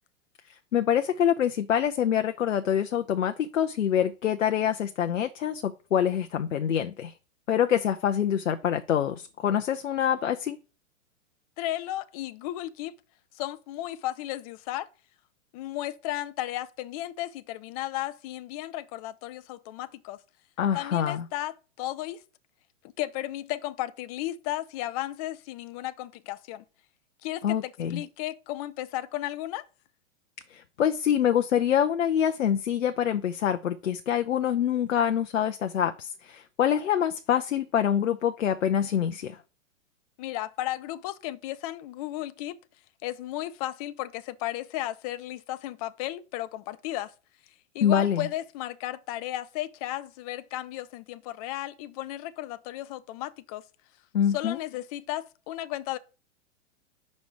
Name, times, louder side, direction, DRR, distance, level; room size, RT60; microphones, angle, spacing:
voice 1, 0.7-7.1 7.5-10.6 20.6-21.2 27.4-28.0 30.5-39.4 47.8-48.3 54.1-54.6, left 9 dB, 80° left, 0.6 m, -25 dB
voice 2, 11.6-12.9 13.3-14.9 15.5-20.2 20.7-22.2 23.0-26.6 27.2-29.6 40.2-42.6 43.0-47.1 47.7-53.6 54.3-56.0, left 15 dB, 30° left, 0.4 m, -34 dB
5.3 x 5.1 x 4.8 m
hypercardioid pair, 110°, 37 cm